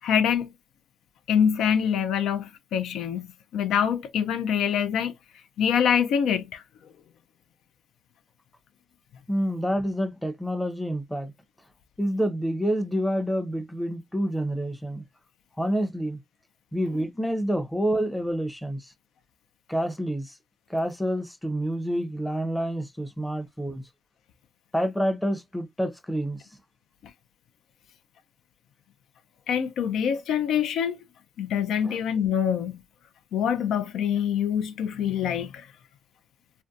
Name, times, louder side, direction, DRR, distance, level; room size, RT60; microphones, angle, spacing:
voice 1, 0.0-0.5 1.3-3.3 3.5-5.1 5.6-6.6 29.5-31.0 31.4-32.8 33.3-35.7, left 8 dB, 75° left, 0.4 m, -25 dB
voice 2, 9.3-11.3 12.0-15.0 15.6-16.2 16.7-18.9 19.7-20.3 20.7-23.8 24.7-26.4 31.8-32.0, equal, 5° left, 0.6 m, -28 dB
2.4 x 2.2 x 2.6 m
cardioid pair, 90°, 0 cm